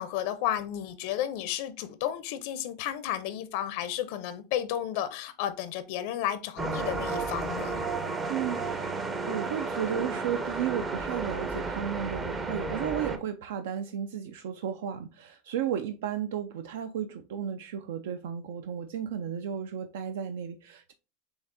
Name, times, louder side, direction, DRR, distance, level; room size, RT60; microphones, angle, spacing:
voice 1, 0.0-7.8, left 11 dB, 65° left, 0.4 m, -32 dB
sound 1, 6.6-13.2, right 3 dB, 20° right, 0.5 m, -32 dB
voice 2, 8.3-9.0 9.3-20.9, right 9 dB, 85° right, 0.3 m, -34 dB
6.8 x 2.3 x 2.5 m
supercardioid pair, 130°, 0 cm